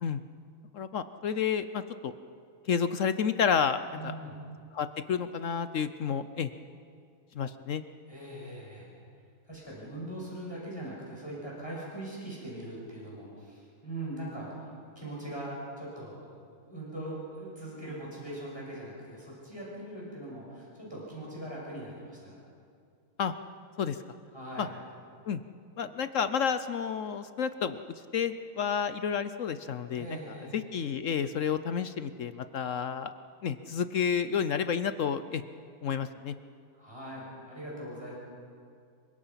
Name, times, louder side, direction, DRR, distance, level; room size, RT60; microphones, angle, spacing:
voice 1, 0.7-2.1 2.7-4.1 4.7-6.5 7.3-7.8 23.2-23.3 23.8-24.0 24.6-24.7 25.3-25.4 25.8-27.8 28.1-30.1 30.5-33.1 33.4-35.4 35.8-36.3, left 7 dB, 60° left, 11 dB, 1.0 m, -30 dB
voice 2, 3.9-4.4 8.1-8.9 9.4-16.2 16.6-22.4 24.3-24.7 29.9-30.6 36.7-38.2, right 1 dB, 15° left, -5 dB, 6.7 m, -41 dB
26.5 x 24.0 x 5.7 m, 2.3 s
omnidirectional pair, 1.7 m